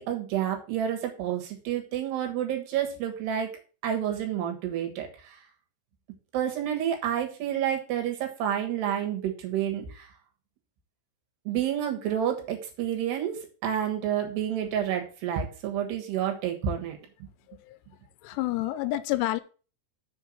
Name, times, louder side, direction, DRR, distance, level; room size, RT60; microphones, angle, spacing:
voice 1, 0.0-3.5 3.8-5.4 6.3-10.1 11.5-17.0, right 9 dB, 70° right, 3.4 m, -29 dB
voice 2, 18.2-19.4, left 16 dB, 80° left, 2.7 m, -29 dB
6.8 x 4.5 x 6.4 m
omnidirectional pair, 5.1 m